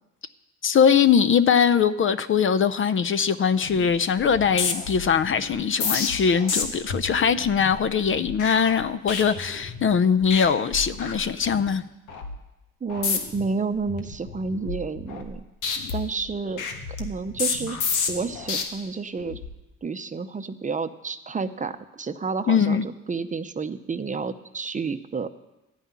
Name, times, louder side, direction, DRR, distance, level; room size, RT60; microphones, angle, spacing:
voice 1, 0.6-11.8 22.5-22.8, left 7 dB, 45° left, 0.5 m, -21 dB
sound 1, 3.6-3.9 4.2-9.9 10.2-10.5 10.7-11.7 12.1-12.4 12.9-13.5 13.9-15.4 15.6-18.6 19.2-19.5, left 5 dB, 90° left, 1.4 m, -31 dB
voice 2, 12.8-15.4 15.9-16.6 17.0-17.8 18.1-19.4 19.8-25.3, right 4 dB, 25° right, 0.7 m, -30 dB
13.0 x 5.6 x 9.4 m
cardioid pair, 90°, 30 cm